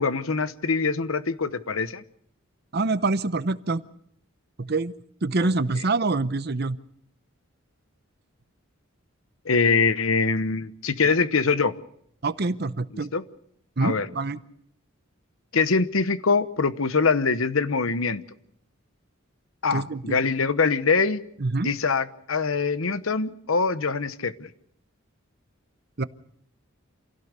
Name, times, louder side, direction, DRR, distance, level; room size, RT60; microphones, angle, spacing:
voice 1, 0.0-2.0 5.4-5.5 9.4-11.7 13.1-13.2 13.8-14.1 15.5-18.2 19.6-21.2 21.6-24.5, left 4 dB, 80° left, 13 dB, 1.0 m, -23 dB
voice 2, 2.7-3.8 4.6-4.9 5.2-6.8 12.2-13.1 13.8-14.4 19.7-20.2 21.4-21.7 26.0-26.1, right 3 dB, 50° right, 14 dB, 0.8 m, -25 dB
27.0 x 17.0 x 6.6 m, 0.69 s
head